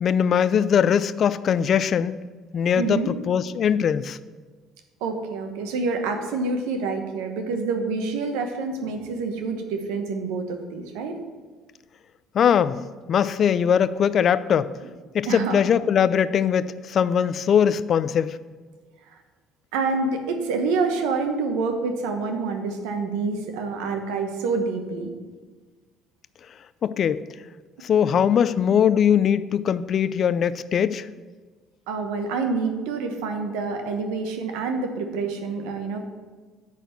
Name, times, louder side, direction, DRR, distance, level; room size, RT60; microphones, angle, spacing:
voice 1, 0.0-2.2 2.5-3.0 3.3-4.2 12.3-12.8 13.1-14.7 15.1-18.4 26.8-27.2 27.8-31.1, left 8 dB, 55° left, 15 dB, 0.4 m, -21 dB
voice 2, 2.8-3.1 5.0-11.2 15.3-15.6 19.1-19.2 19.7-25.1 31.9-36.1, right 4 dB, 90° right, 5 dB, 1.0 m, -27 dB
9.3 x 4.1 x 6.7 m, 1.4 s
supercardioid pair, 85°, 0 cm